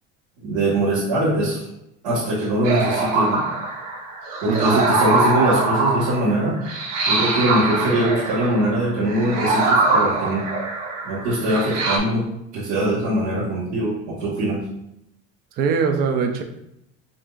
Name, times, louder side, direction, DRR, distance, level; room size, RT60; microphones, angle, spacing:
voice 1, 0.4-1.6 2.0-3.5 4.4-6.6 7.1-10.5 11.0-12.3 12.5-14.7, right 1 dB, 90° right, -10 dB, 1.6 m, -22 dB
sound 1, 2.6-12.0, right 3 dB, 60° right, 1.1 m, -23 dB
voice 2, 4.5-4.8 15.6-16.4, right 6 dB, 30° right, 5 dB, 0.3 m, -21 dB
6.0 x 2.8 x 2.4 m, 0.81 s
cardioid pair, 155°, 34 cm